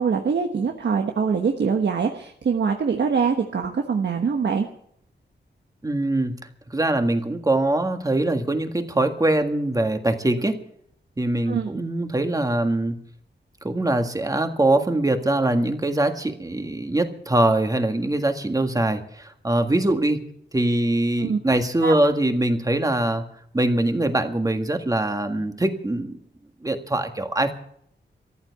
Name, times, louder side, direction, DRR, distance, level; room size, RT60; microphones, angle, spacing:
voice 1, 0.0-4.7 11.5-11.7 21.2-21.4 21.8-22.0, right 6 dB, 70° right, 4 dB, 1.2 m, -23 dB
voice 2, 5.8-6.3 6.7-10.6 11.2-13.0 13.6-20.2 20.5-23.2 23.5-26.2 26.6-27.5, right 1 dB, 20° right, 6 dB, 1.7 m, -23 dB
14.5 x 11.0 x 8.2 m, 0.68 s
wide cardioid pair, 120°, 19 cm